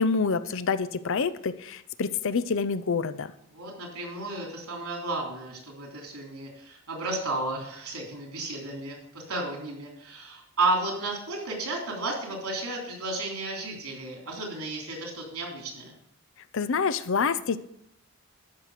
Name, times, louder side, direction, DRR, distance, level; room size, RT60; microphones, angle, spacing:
voice 1, 0.0-3.3 16.5-17.6, left 5 dB, 65° left, 14 dB, 0.6 m, -27 dB
voice 2, 3.5-15.9, right 2 dB, 90° right, 0 dB, 3.5 m, -33 dB
13.0 x 6.0 x 5.0 m, 0.72 s
head